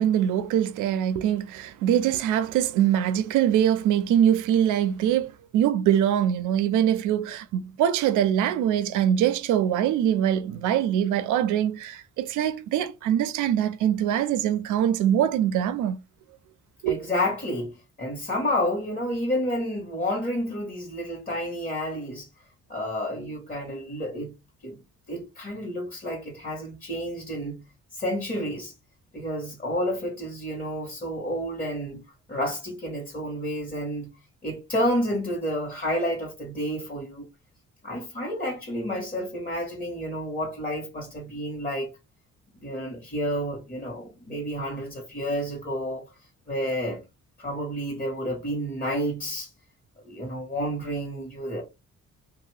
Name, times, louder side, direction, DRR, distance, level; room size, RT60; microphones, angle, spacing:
voice 1, 0.0-16.0 16.8-17.0, right 10 dB, 85° right, 0.5 m, -23 dB
voice 2, 16.8-22.3 22.7-24.4 24.6-24.8 25.1-27.6 27.9-28.7 29.1-32.0 32.3-34.1 34.4-37.3 37.8-41.9 42.5-46.1 46.5-47.0 47.4-49.5 50.1-51.6, equal, 30° left, 1.2 m, -30 dB
2.7 x 2.4 x 3.2 m
cardioid pair, 90°, 30 cm